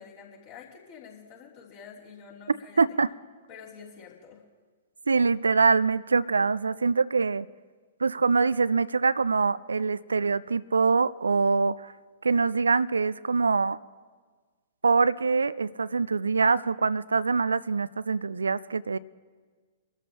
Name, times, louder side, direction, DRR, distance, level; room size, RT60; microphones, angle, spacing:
voice 1, 0.0-2.8 3.5-4.4, left 6 dB, 40° left, 3.1 m, -48 dB
voice 2, 2.8-3.1 5.1-7.5 8.0-11.9 12.2-13.8 14.8-19.0, right 4 dB, 75° right, 0.3 m, -24 dB
23.0 x 12.5 x 2.9 m
figure-of-eight pair, 110°, 0 cm